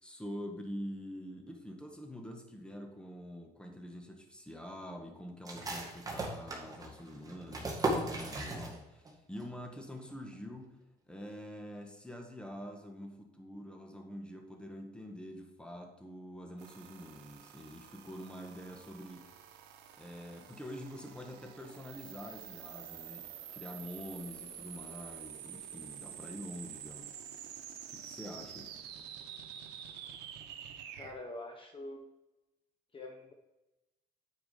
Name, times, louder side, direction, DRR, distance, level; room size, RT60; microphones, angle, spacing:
voice 1, 0.0-10.8 11.1-19.3 20.0-23.3 23.5-27.1 27.9-28.7, equal, 5° left, 3 dB, 1.6 m, -46 dB
sound 1, 5.4-9.1 9.4-9.5 9.9-10.4, right 2 dB, 20° right, 2.0 m, -37 dB
sound 2, 16.6-31.1, right 9 dB, 85° right, 1.0 m, -48 dB
voice 2, 31.0-32.0 32.9-33.3, left 2 dB, 30° left, 2 dB, 1.0 m, -45 dB
8.9 x 4.9 x 5.0 m, 1.0 s
cardioid pair, 110°, 17 cm